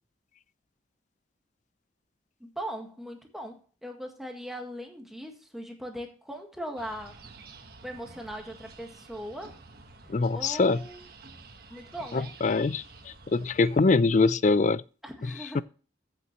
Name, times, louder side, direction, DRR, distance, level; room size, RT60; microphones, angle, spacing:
voice 1, 2.4-7.2 7.8-9.6 10.3-11.0 11.7-12.3 15.0-15.6, equal, ahead, 1.7 m, -39 dB
sound 1, 6.8-13.8, right 4 dB, 55° right, 1.5 m, -50 dB
voice 2, 10.1-10.8 12.1-14.8 15.5-15.6, left 3 dB, 40° left, 0.4 m, -24 dB
15.0 x 6.9 x 3.1 m
head